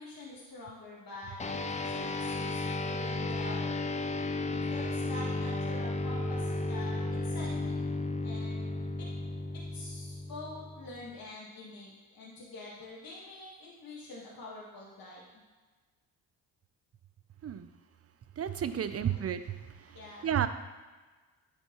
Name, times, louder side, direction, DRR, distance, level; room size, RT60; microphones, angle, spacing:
voice 1, 0.0-3.7 4.7-7.9 8.2-8.6 9.0-9.1 9.7-15.4 18.6-19.2 19.9-20.3, left 2 dB, 50° left, -5 dB, 1.7 m, -46 dB
sound 1, 1.4-11.1, left 2 dB, 15° left, 0.5 m, -34 dB
voice 2, 18.4-19.4 20.2-20.5, right 9 dB, 35° right, 11 dB, 0.5 m, -31 dB
9.4 x 4.4 x 3.1 m, 1.3 s
supercardioid pair, 60°, 44 cm